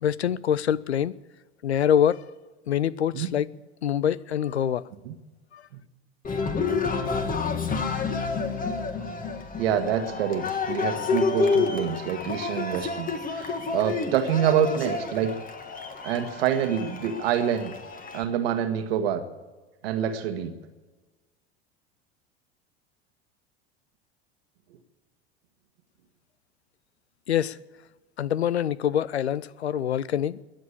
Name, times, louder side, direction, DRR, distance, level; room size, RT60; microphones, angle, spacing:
voice 1, 0.0-1.1 1.6-2.3 2.7-3.5 3.8-4.9 5.5-5.6 27.3-27.6 28.2-30.4, left 9 dB, 90° left, 0.5 m, -25 dB
Cheering, 6.2-18.2, left 4 dB, 25° left, 1.7 m, -29 dB
voice 2, 9.6-15.3 16.0-17.7 18.1-19.2 19.8-20.5, right 9 dB, 70° right, 1.6 m, -26 dB
21.5 x 7.7 x 8.4 m
hypercardioid pair, 75°, 32 cm